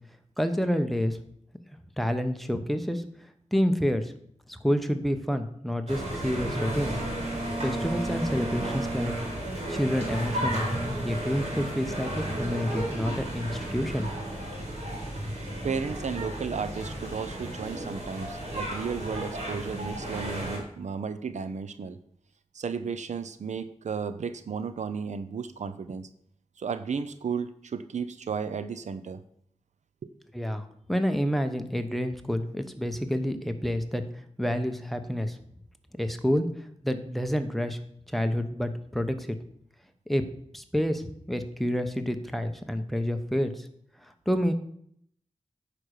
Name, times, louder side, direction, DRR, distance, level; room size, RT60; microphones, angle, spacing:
voice 1, 0.4-1.2 2.0-3.0 3.5-4.1 4.5-7.0 7.6-9.1 9.7-10.7 11.0-14.1 30.3-34.0 34.4-35.4 36.0-36.5 36.8-37.8 38.1-39.4 40.1-40.2 40.5-43.6 44.3-44.5, equal, ahead, 8 dB, 1.0 m, -28 dB
sound 1, 5.9-20.6, right 1 dB, 65° right, 3.7 m, -33 dB
voice 2, 15.5-22.0 22.5-26.1 26.6-29.2, right 6 dB, 90° right, 12 dB, 0.6 m, -34 dB
9.4 x 5.1 x 6.6 m, 0.67 s
wide cardioid pair, 75°, 12 cm